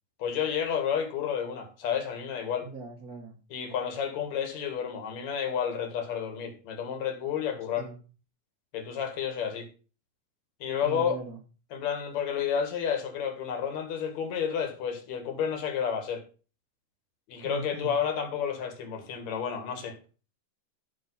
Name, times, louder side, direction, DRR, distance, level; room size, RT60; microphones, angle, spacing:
voice 1, 0.2-2.7 3.5-7.9 8.7-9.7 10.6-11.2 11.7-16.2 17.3-20.0, left 8 dB, 60° left, 4 dB, 3.1 m, -31 dB
voice 2, 2.6-3.4 7.8-8.0 10.8-11.4 17.4-18.0, right 3 dB, 55° right, 2 dB, 1.0 m, -39 dB
12.5 x 4.7 x 5.6 m, 0.36 s
omnidirectional pair, 3.8 m